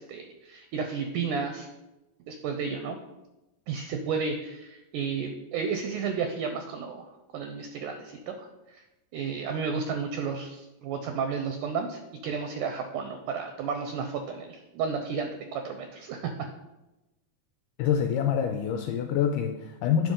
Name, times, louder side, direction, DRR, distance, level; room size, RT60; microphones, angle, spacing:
voice 1, 0.0-1.7 2.3-3.0 3.7-8.8 9.1-16.3, right 5 dB, 80° right, 5 dB, 1.9 m, -32 dB
voice 2, 17.8-20.1, left 8 dB, 80° left, 5 dB, 2.0 m, -26 dB
9.1 x 5.6 x 3.7 m, 0.98 s
omnidirectional pair, 4.1 m